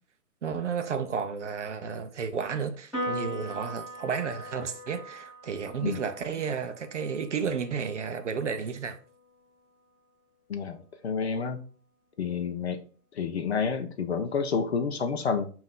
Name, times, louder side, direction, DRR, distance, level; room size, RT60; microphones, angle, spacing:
voice 1, 0.4-9.0, right 6 dB, 50° right, 0.5 m, -32 dB
Piano, 2.9-9.6, equal, ahead, 1.5 m, -41 dB
voice 2, 10.5-11.6 12.2-12.8 13.1-15.5, left 5 dB, 45° left, 0.5 m, -29 dB
5.2 x 2.6 x 3.6 m
hypercardioid pair, 145°, 48 cm